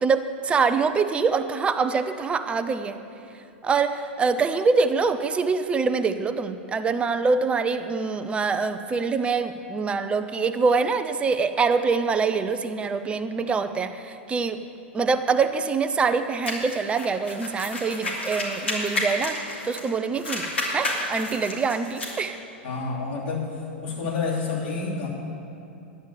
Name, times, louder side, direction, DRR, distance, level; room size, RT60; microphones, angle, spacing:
voice 1, 0.0-3.0 3.6-14.6 14.9-22.4, right 4 dB, 15° right, 9 dB, 0.7 m, -24 dB
sound 1, 16.4-19.9 20.1-22.2, left 1 dB, 80° left, 2.9 m, -30 dB
voice 2, 22.6-23.5 23.8-25.1, left 4 dB, 55° left, -3 dB, 3.1 m, -28 dB
11.0 x 8.8 x 8.0 m, 2.7 s
figure-of-eight pair, 95°, 6 cm